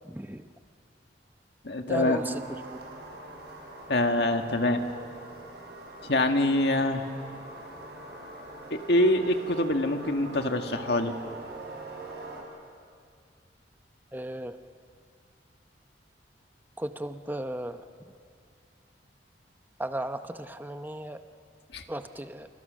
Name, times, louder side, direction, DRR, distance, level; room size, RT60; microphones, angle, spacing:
voice 1, 0.0-0.5 1.9-2.4 2.7-2.8 14.1-14.6 16.8-17.8 19.8-21.2 21.9-22.5, right 1 dB, 10° right, 9 dB, 0.8 m, -35 dB
voice 2, 1.6-2.2 3.9-4.8 6.1-7.0 8.7-11.1 21.7-21.8, left 1 dB, 60° left, 5 dB, 1.9 m, -25 dB
sound 1, 1.9-12.4, right 2 dB, 60° right, 5.9 m, -43 dB
30.0 x 28.5 x 6.5 m, 2.2 s
head